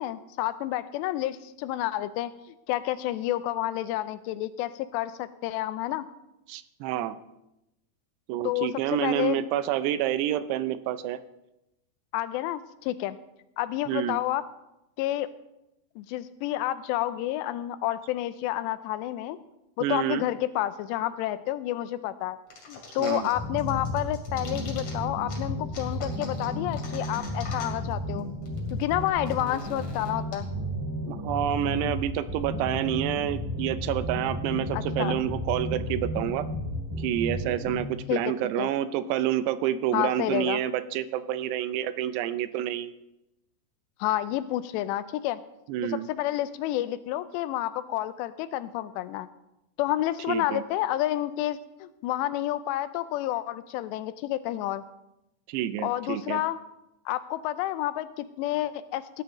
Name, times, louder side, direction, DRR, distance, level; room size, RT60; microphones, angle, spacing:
voice 1, 0.0-2.3 2.7-6.1 8.4-9.4 12.1-13.2 13.6-14.4 15.0-15.3 16.0-19.4 19.8-22.4 22.7-28.3 28.7-30.5 34.7-35.2 38.1-38.2 38.6-38.7 39.9-40.6 44.0-45.4 45.8-49.3 49.8-54.8 55.8-56.6 57.1-59.2, left 14 dB, 85° left, 13 dB, 2.7 m, -29 dB
voice 2, 6.5-7.2 8.3-11.2 13.9-14.2 19.8-20.2 23.0-23.3 31.1-36.5 37.0-42.9 45.7-46.1 50.3-50.6 55.5-56.4, right 11 dB, 80° right, 13 dB, 2.6 m, -28 dB
sound 1, 22.5-23.3 23.6-24.9 25.3-25.4 25.7-27.9 28.2-28.3 28.5-30.3, left 4 dB, 45° left, 3.0 m, -42 dB
sound 2, 23.3-37.8, left 1 dB, 10° right, 1.5 m, -33 dB
17.5 x 11.5 x 3.1 m, 0.89 s
omnidirectional pair, 5.0 m